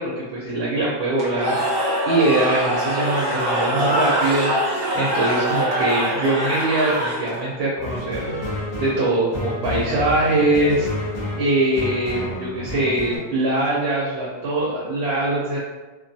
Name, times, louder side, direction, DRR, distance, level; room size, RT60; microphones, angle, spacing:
voice 1, 0.0-1.6 2.1-8.3 8.8-10.9 11.4-15.6, right 2 dB, 90° right, -5 dB, 0.9 m, -22 dB
Cheering / Crowd, 1.2-7.5, equal, 30° right, 0.5 m, -23 dB
sound 1, 7.8-13.2, left 2 dB, 45° left, 0.7 m, -29 dB
2.4 x 2.3 x 2.6 m, 1.1 s
omnidirectional pair, 1.0 m